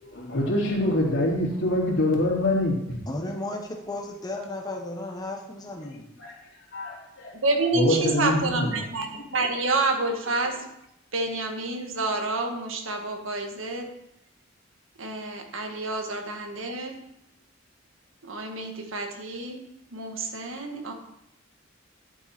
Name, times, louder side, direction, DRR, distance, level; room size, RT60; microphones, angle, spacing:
voice 1, 0.0-2.9 6.2-6.3 6.7-7.3 7.7-8.7, left 1 dB, 65° left, -3 dB, 3.2 m, -25 dB
voice 2, 3.1-6.2, left 2 dB, 20° left, 1 dB, 1.1 m, -34 dB
voice 3, 7.3-10.7 11.1-13.9 15.0-17.0 18.2-19.6 19.9-20.9, right 3 dB, 75° right, 4 dB, 1.7 m, -28 dB
12.0 x 7.4 x 4.4 m, 0.81 s
head